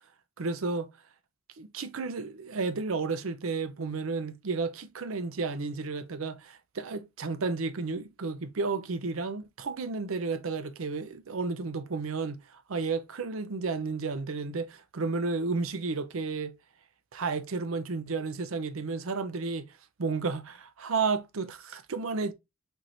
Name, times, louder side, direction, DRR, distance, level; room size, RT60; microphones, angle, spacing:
voice 1, 0.4-0.9 1.6-16.5 17.1-19.7 20.0-22.3, right 4 dB, 85° right, 0.6 m, -32 dB
4.6 x 4.4 x 2.6 m
head